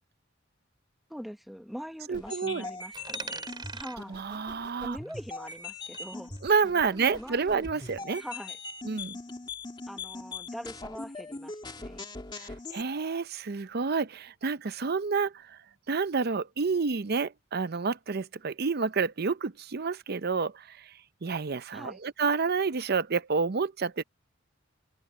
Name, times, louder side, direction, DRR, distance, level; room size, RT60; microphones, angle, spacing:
voice 1, 1.1-3.4 3.7-4.2 4.8-6.3 6.9-7.7 8.2-8.6 9.9-12.1 21.7-22.0, equal, ahead, 1.1 m, -43 dB
sound 1, 2.1-12.8, left 3 dB, 25° left, 1.7 m, -41 dB
voice 2, 2.1-2.7 4.1-5.0 6.4-8.2 8.8-9.2 12.3-15.6 15.9-20.9 21.2-24.0, right 5 dB, 50° right, 0.6 m, -29 dB
Coin (dropping), 2.9-5.7 5.9-8.0, right 4 dB, 25° right, 6.3 m, -45 dB
open air
head